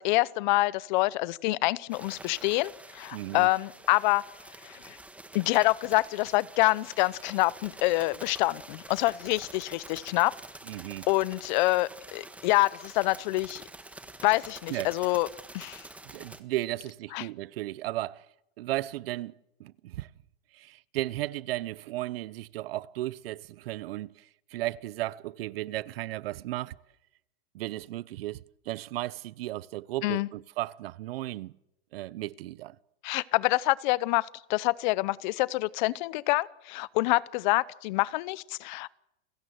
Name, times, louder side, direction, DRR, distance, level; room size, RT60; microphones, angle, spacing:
voice 1, 0.0-4.2 4.6-5.0 5.3-10.3 11.1-13.6 14.2-15.3 15.5-15.8 17.1-17.3 30.0-30.3 33.0-38.9, left 20 dB, 45° left, 0.8 m, -26 dB
sound 1, 1.9-16.4, right 2 dB, 5° right, 1.4 m, -47 dB
voice 2, 3.1-3.5 10.7-11.1 14.7-14.9 16.1-18.3 18.6-19.3 19.6-20.1 20.5-26.7 27.5-31.5 31.9-32.8, right 16 dB, 65° right, 0.9 m, -35 dB
29.0 x 16.0 x 7.8 m
supercardioid pair, 150°, 31 cm